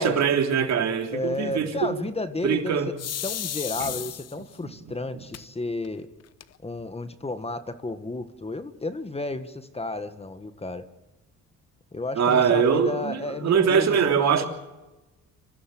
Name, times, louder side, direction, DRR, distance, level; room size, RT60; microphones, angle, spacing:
voice 1, 0.0-1.9 2.4-2.9 3.8-3.9 5.1-5.2 12.1-14.5, right 7 dB, 60° right, 3.3 m, -22 dB
voice 2, 1.1-2.8 3.2-6.1 6.6-10.8 11.9-14.4, left 2 dB, 20° left, 1.7 m, -32 dB
sound 1, 3.0-4.6 5.3-5.4 5.8-5.9 6.2-6.8, left 10 dB, 55° left, 0.9 m, -33 dB
26.0 x 16.0 x 7.7 m
cardioid pair, 90°, 30 cm